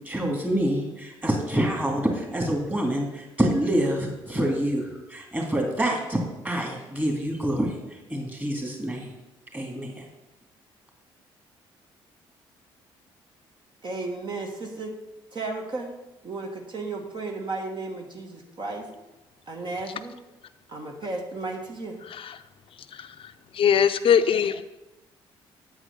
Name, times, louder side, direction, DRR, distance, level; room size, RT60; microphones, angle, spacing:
voice 1, 0.1-6.2 6.4-7.8 8.1-9.1 9.5-9.9, right 1 dB, 15° right, 0 dB, 2.5 m, -26 dB
voice 2, 13.8-14.9 15.3-15.9 16.2-18.9 19.5-20.2 20.7-22.0, right 3 dB, 45° right, 1 dB, 1.4 m, -34 dB
voice 3, 23.5-24.6, left 8 dB, 55° left, 11 dB, 0.5 m, -21 dB
8.2 x 4.9 x 6.6 m, 1.0 s
supercardioid pair, 60°, 11 cm